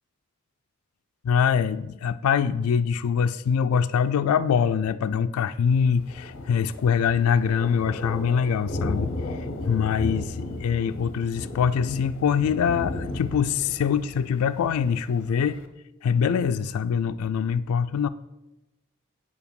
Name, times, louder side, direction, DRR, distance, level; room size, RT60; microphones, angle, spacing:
voice 1, 1.2-15.6 16.0-18.1, left 7 dB, 90° left, 12 dB, 0.3 m, -24 dB
Thunder, 5.7-15.7, left 2 dB, 65° left, 0.7 m, -35 dB
8.4 x 4.8 x 5.3 m, 0.99 s
head